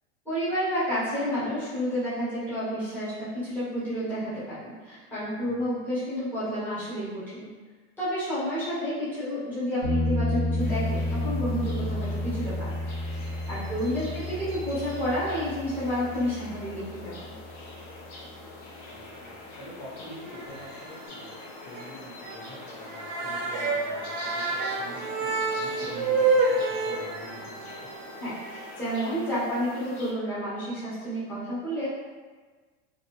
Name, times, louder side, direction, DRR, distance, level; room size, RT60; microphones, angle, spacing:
voice 1, 0.2-7.5 8.0-12.7 13.5-17.1 28.2-31.9, equal, 5° left, -13 dB, 0.8 m, -30 dB
sound 1, 9.8-17.4 20.5-20.6, left 1 dB, 60° left, 1.4 m, -31 dB
sound 2, 10.6-30.1, left 2 dB, 35° left, 0.5 m, -44 dB
voice 2, 18.9-27.9, equal, 80° left, -9 dB, 1.4 m, -46 dB
sound 3, 20.3-20.9 21.2-21.3 21.7-21.9 22.2-22.4 22.7-28.7, right 3 dB, 45° right, 0.5 m, -28 dB
3.0 x 2.5 x 3.0 m, 1.4 s
supercardioid pair, 170°, 34 cm